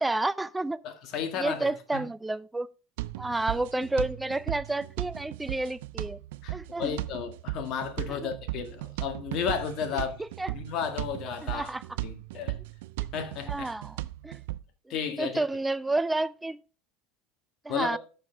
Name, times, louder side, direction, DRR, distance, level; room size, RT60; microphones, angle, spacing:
voice 1, 0.0-0.8 1.4-2.7 3.2-6.2 6.5-7.0 8.1-8.3 10.2-10.5 11.4-11.8 13.5-14.4 15.2-16.6 17.6-18.0, right 2 dB, 10° right, 0.4 m, -30 dB
voice 2, 0.8-2.1 6.4-10.2 10.5-11.7 12.0-12.6 13.1-13.7 14.9-15.4 17.7-18.0, left 7 dB, 55° left, 1.8 m, -33 dB
sound 1, 3.0-14.6, right 17 dB, 80° right, 0.4 m, -37 dB
11.0 x 6.5 x 3.3 m
supercardioid pair, 105°, 0 cm